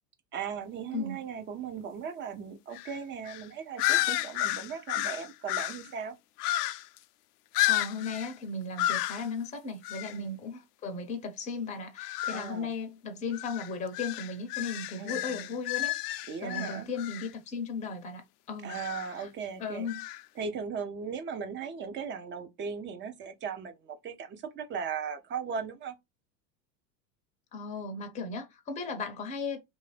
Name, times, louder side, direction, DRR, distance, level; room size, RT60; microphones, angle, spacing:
voice 1, 0.3-6.1 10.1-10.4 12.3-12.7 15.0-15.6 16.3-16.9 18.6-19.9 20.4-25.9, right 6 dB, 25° right, 0.6 m, -38 dB
sound 1, 2.7-3.0 3.2-3.4 3.8-5.9 6.4-7.0 7.5-8.3 8.8-9.3 9.8-10.2 12.0-12.5 13.3-17.3 18.7-19.1 19.9-20.2, left 16 dB, 70° left, 0.5 m, -31 dB
voice 2, 7.6-16.0 16.4-18.8 19.1-19.3 19.6-20.1 27.5-29.6, left 4 dB, 15° left, 0.6 m, -36 dB
3.3 x 2.7 x 3.2 m
hypercardioid pair, 115°, 50 cm